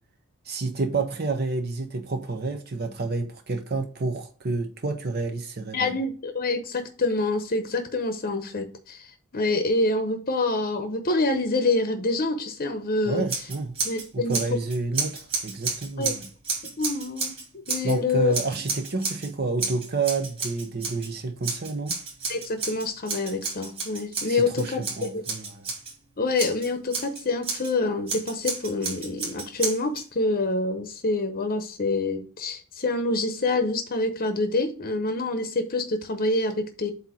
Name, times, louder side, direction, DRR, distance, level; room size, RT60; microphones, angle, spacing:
voice 1, 0.4-5.9 13.1-13.7 14.1-16.3 17.8-22.0 24.2-25.7, right 3 dB, 45° right, 0.7 m, -29 dB
voice 2, 5.7-9.1 9.3-13.2 13.8-14.4 16.0-16.1 16.8-17.4 17.7-18.3 22.3-25.2 26.2-36.9, left 2 dB, 40° left, 0.8 m, -26 dB
Scissors, 13.3-14.1 14.3-18.0 18.3-19.3 19.6-21.1 21.4-25.9 26.4-27.7 28.1-30.0, right 4 dB, 25° right, 3.0 m, -31 dB
7.9 x 2.8 x 6.0 m
head